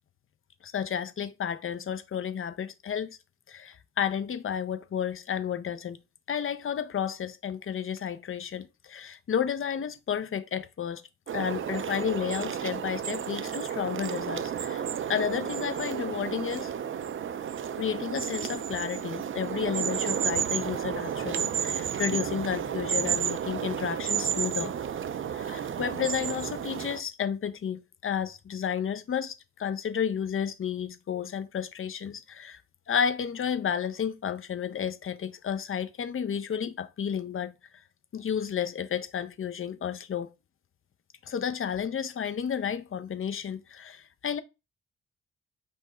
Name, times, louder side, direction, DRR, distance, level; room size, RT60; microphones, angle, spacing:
voice 1, 0.6-3.2 3.5-6.0 6.3-11.0 11.3-14.8 15.1-16.7 17.7-24.7 25.3-32.6 32.9-37.5 38.1-40.3 41.2-44.4, left 8 dB, 40° left, 0.7 m, -32 dB
sound 1, 11.3-27.0, right 8 dB, 40° right, 0.5 m, -32 dB
5.4 x 2.1 x 4.3 m
hypercardioid pair, 40°, 33 cm